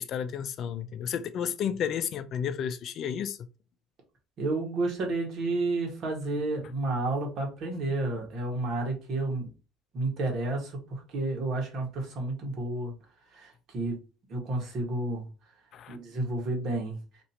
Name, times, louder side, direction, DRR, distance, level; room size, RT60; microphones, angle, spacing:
voice 1, 0.0-3.4 15.7-16.0, left 8 dB, 55° left, 0.5 m, -32 dB
voice 2, 4.4-9.5 9.9-12.9 13.3-14.0 14.3-15.3 15.9-17.0, right 2 dB, 60° right, 1.5 m, -31 dB
3.0 x 2.7 x 4.2 m
supercardioid pair, 80°, 0 cm